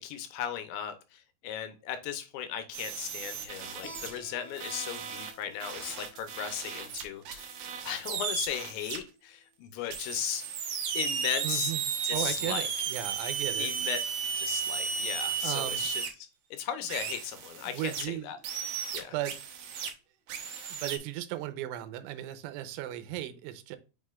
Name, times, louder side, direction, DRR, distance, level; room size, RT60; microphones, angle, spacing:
voice 1, 0.0-7.5 7.8-10.4 10.9-11.7 12.0-12.7 13.6-14.0 14.4-16.0 16.5-18.4 18.9-19.1, left 10 dB, 80° left, 2.9 m, -36 dB
sound 1, 2.7-4.2 4.6-9.0 9.9-16.1 16.9-18.0 18.4-19.9 20.3-21.0, right 7 dB, 65° right, 2.3 m, -34 dB
Keyboard (musical), 3.8-9.1, right 1 dB, 15° left, 2.7 m, -53 dB
voice 2, 11.4-11.8 12.1-13.7 15.4-15.9 17.7-18.3 19.1-19.4 20.7-23.8, right 13 dB, 85° right, 3.2 m, -36 dB
7.6 x 5.7 x 2.4 m
omnidirectional pair, 5.4 m